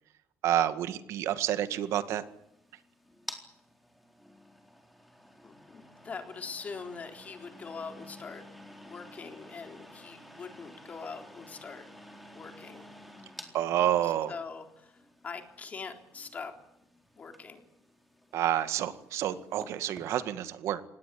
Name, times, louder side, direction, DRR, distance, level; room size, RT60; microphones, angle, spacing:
voice 1, 0.4-2.2 13.5-14.3 18.3-20.8, right 11 dB, 80° right, 12 dB, 1.9 m, -29 dB
sound 1, 1.5-20.1, equal, ahead, 4.0 m, -52 dB
voice 2, 5.4-8.4 8.9-11.9 12.4-12.9 14.0-15.0 15.2-16.5 17.2-17.6, left 5 dB, 30° left, 6 dB, 3.7 m, -43 dB
26.0 x 19.5 x 8.7 m, 0.82 s
cardioid pair, 150°, 5 cm